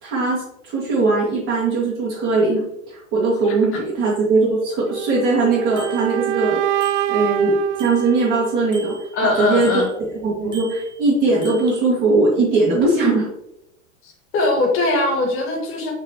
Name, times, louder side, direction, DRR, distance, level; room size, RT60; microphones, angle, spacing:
voice 1, 0.0-6.6 7.1-9.0 9.2-13.3, right 3 dB, 30° right, -8 dB, 2.4 m, -20 dB
sound 1, 4.9-8.9, right 14 dB, 60° right, 0.5 m, -25 dB
Bicycle bell, 5.8-6.1 6.8-7.4 7.8-10.0 10.5-11.8, right 2 dB, 10° right, 1.8 m, -41 dB
voice 2, 9.1-9.9 14.0-15.9, left 2 dB, 35° left, 0 dB, 2.0 m, -21 dB
5.9 x 5.8 x 3.1 m, 0.84 s
hypercardioid pair, 100°, 40 cm